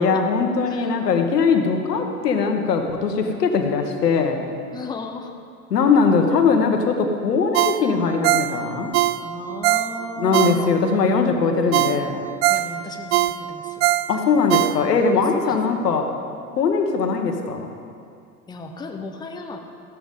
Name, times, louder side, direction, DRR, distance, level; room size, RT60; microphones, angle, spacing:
voice 1, 0.0-4.5 5.7-8.9 10.2-12.2 14.1-16.1 16.5-17.7, left 5 dB, 75° left, 5 dB, 1.4 m, -20 dB
voice 2, 4.7-5.3 9.2-10.8 11.4-11.9 12.5-13.9 15.3-15.6 18.5-19.6, left 3 dB, 10° left, 4 dB, 0.8 m, -35 dB
Ringtone, 7.5-11.0 11.4-11.5 11.7-15.2 15.6-15.7, right 15 dB, 40° right, 0.4 m, -22 dB
15.0 x 12.0 x 3.8 m, 2.3 s
hypercardioid pair, 90°, 48 cm